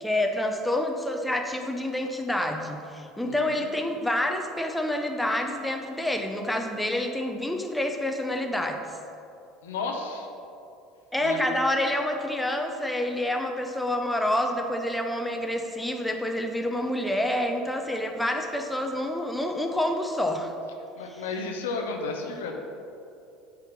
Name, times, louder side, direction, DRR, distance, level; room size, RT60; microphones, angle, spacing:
voice 1, 0.0-8.8 11.1-20.5, left 1 dB, 5° left, 3 dB, 0.7 m, -28 dB
voice 2, 3.2-3.7 9.6-10.3 11.2-11.4 21.0-22.6, left 4 dB, 75° left, 3 dB, 0.8 m, -33 dB
8.0 x 3.6 x 5.9 m, 2.7 s
hypercardioid pair, 70°, 0 cm